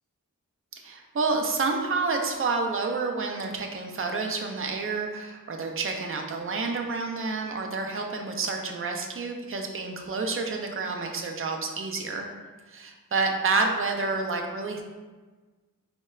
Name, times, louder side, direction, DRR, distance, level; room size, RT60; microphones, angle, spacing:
voice 1, 0.8-12.3 12.7-14.8, right 4 dB, 40° right, 2 dB, 0.4 m, -29 dB
3.7 x 2.1 x 2.3 m, 1.3 s
wide cardioid pair, 55°, 34 cm